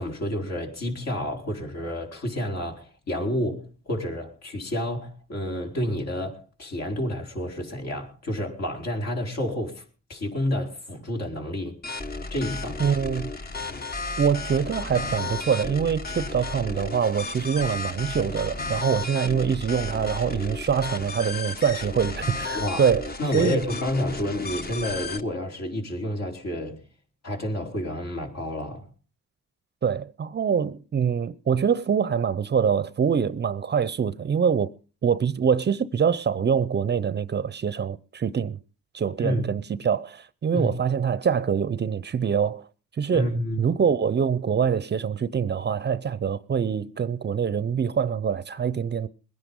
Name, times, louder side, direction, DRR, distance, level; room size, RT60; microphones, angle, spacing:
voice 1, 0.0-9.8 10.1-11.8 12.3-13.0 22.5-22.8 23.2-26.8 27.2-28.9 39.2-39.4 40.5-40.7 43.1-43.6, left 1 dB, 60° left, 4.6 m, -29 dB
sound 1, 11.8-25.2, left 3 dB, 30° left, 1.3 m, -33 dB
voice 2, 12.8-13.3 14.2-23.1 23.3-23.6 29.8-34.7 35.0-38.6 38.9-42.7 43.0-43.3 43.6-49.1, right 7 dB, 35° right, 0.7 m, -24 dB
21.0 x 10.0 x 5.4 m
cardioid pair, 90°, 30 cm